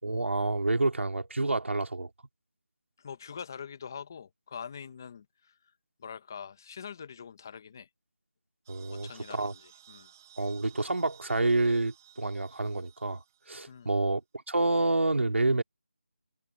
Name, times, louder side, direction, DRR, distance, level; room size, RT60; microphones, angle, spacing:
voice 1, 0.0-2.1 8.7-9.5 10.4-13.2 13.5-14.2 14.5-15.6, right 2 dB, 75° right, 3.3 m, -28 dB
voice 2, 3.0-5.7 6.0-7.9 8.9-10.1 13.7-13.9, left 7 dB, 15° left, 0.7 m, -44 dB
sound 1, 8.6-13.9, right 11 dB, 15° right, 3.5 m, -58 dB
figure-of-eight pair, 175°, 7 cm